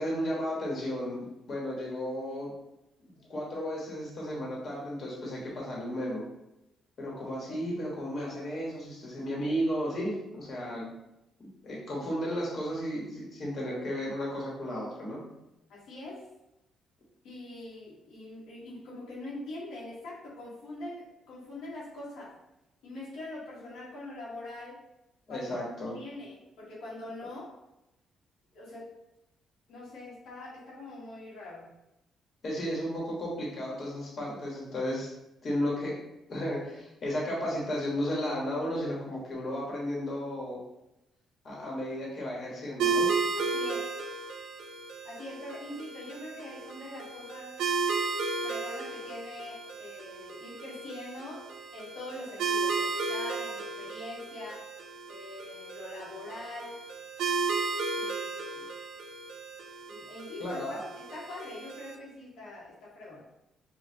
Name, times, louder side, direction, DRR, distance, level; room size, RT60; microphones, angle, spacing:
voice 1, 0.0-2.5 3.0-6.2 7.0-10.9 11.6-15.2 25.3-26.0 32.4-35.1 35.4-35.9 36.3-40.6 41.4-43.1 60.4-60.8, equal, 50° left, -4 dB, 1.4 m, -34 dB
voice 2, 15.7-16.2 17.2-22.3 22.8-24.8 25.3-25.5 25.9-27.4 28.5-28.9 29.7-31.7 43.3-43.9 45.0-47.5 48.4-51.4 51.7-54.6 55.1-56.7 58.0-58.3 58.5-58.7 59.9-60.6 60.9-63.2, left 2 dB, 85° left, -7 dB, 1.3 m, -43 dB
sound 1, 42.8-61.9, right 4 dB, 80° right, 0.5 m, -34 dB
5.1 x 2.5 x 2.8 m, 0.91 s
cardioid pair, 90°, 0 cm